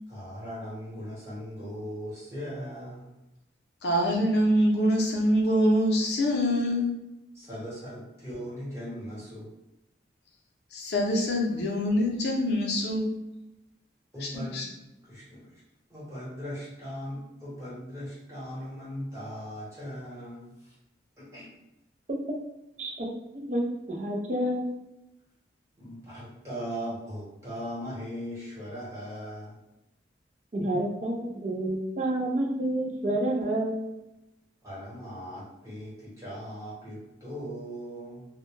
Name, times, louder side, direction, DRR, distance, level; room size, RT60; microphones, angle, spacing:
voice 1, 0.1-3.1 7.3-9.5 14.1-14.7 15.0-15.6 15.9-20.7 21.2-21.5 25.8-29.5 34.6-38.3, equal, 15° right, -9 dB, 1.0 m, -39 dB
voice 2, 3.8-6.9 10.7-13.1 14.2-14.6, equal, 65° left, -1 dB, 0.6 m, -25 dB
voice 3, 22.8-24.7 30.5-33.8, right 1 dB, 40° right, 0 dB, 0.4 m, -29 dB
2.2 x 2.0 x 3.1 m, 0.92 s
head